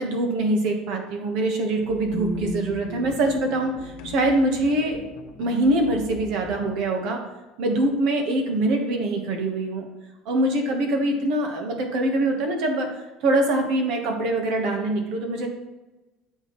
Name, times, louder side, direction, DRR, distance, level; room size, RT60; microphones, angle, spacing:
voice 1, 0.0-5.0 5.4-7.2 7.6-9.9 10.2-15.5, right 1 dB, 65° right, 3 dB, 1.3 m, -24 dB
sound 1, 1.7-6.8, left 5 dB, 85° left, 0.9 m, -36 dB
7.9 x 5.6 x 3.1 m, 1.1 s
cardioid pair, 150°, 0 cm